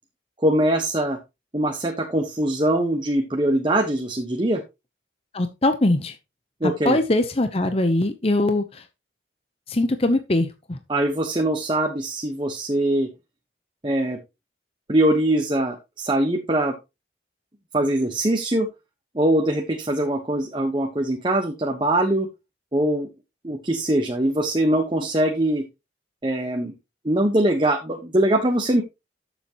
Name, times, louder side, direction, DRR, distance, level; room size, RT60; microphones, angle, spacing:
voice 1, 0.4-1.2 1.5-4.6 6.6-7.0 10.9-13.1 13.8-14.2 14.9-16.8 17.7-18.7 19.1-22.3 22.7-23.1 23.4-25.7 26.2-26.7 27.0-28.8, right 1 dB, 25° right, 4 dB, 1.2 m, -22 dB
voice 2, 5.3-6.2 6.6-8.8 9.7-10.8, left 2 dB, 35° left, 8 dB, 0.8 m, -22 dB
12.5 x 7.1 x 3.0 m, 0.25 s
head